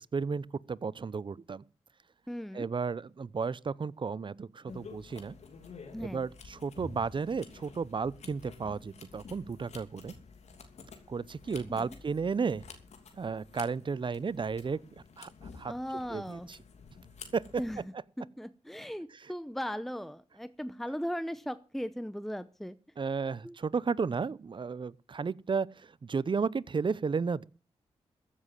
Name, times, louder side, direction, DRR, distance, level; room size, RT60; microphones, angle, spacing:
voice 1, 0.1-1.6 2.5-5.4 6.0-10.1 11.1-12.6 13.2-14.8 15.2-15.8 16.1-16.6 17.3-17.4 23.0-27.5, right 5 dB, 45° right, 0.7 m, -33 dB
voice 2, 2.3-2.7 5.9-6.3 11.7-12.0 15.7-16.5 17.6-17.8 18.2-22.8 23.4-23.6, equal, ahead, 0.8 m, -38 dB
sound 1, 4.7-17.8, left 4 dB, 70° left, 2.9 m, -50 dB
14.5 x 7.4 x 7.6 m
cardioid pair, 55°, 12 cm